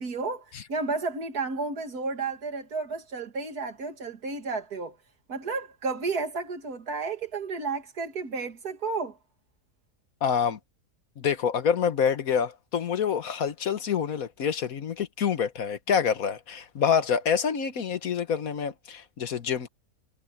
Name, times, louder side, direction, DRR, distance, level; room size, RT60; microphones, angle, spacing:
voice 1, 0.0-5.0 5.3-9.2, right 4 dB, 90° right, 2.5 m, -32 dB
voice 2, 10.2-10.6 11.2-19.7, left 7 dB, 70° left, 1.7 m, -27 dB
omnidirectional pair, 1.6 m